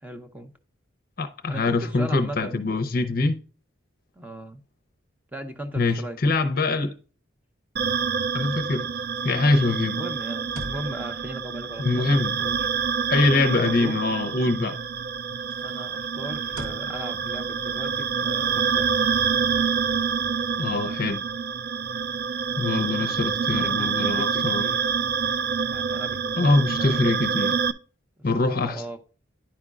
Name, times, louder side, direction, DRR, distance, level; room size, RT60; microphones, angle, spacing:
voice 1, 0.0-0.5 1.5-2.7 4.1-4.6 5.3-6.8 10.0-12.7 13.3-14.0 15.6-19.1 22.9-24.8 25.7-27.0 28.2-29.0, right 1 dB, 10° right, 0.7 m, -38 dB
voice 2, 1.2-3.4 5.7-6.9 8.3-8.9 9.2-10.0 11.8-12.4 13.1-14.8 20.6-21.2 22.6-24.6 26.4-27.5 28.2-28.8, left 3 dB, 45° left, 0.6 m, -23 dB
sound 1, 7.8-27.7, right 6 dB, 50° right, 0.4 m, -27 dB
sound 2, 7.9-14.4 14.7-20.1, equal, 75° right, 1.6 m, -47 dB
10.0 x 5.1 x 2.4 m
head